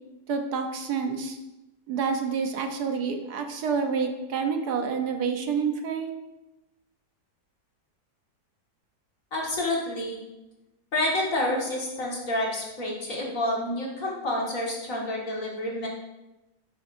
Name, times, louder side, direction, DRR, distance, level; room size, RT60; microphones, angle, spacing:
voice 1, 0.3-1.4 1.9-6.1, right 5 dB, 70° right, 5 dB, 1.4 m, -28 dB
voice 2, 9.3-10.2 10.9-15.9, left 1 dB, 50° left, -3 dB, 2.2 m, -29 dB
12.0 x 7.7 x 2.6 m, 1.0 s
omnidirectional pair, 1.8 m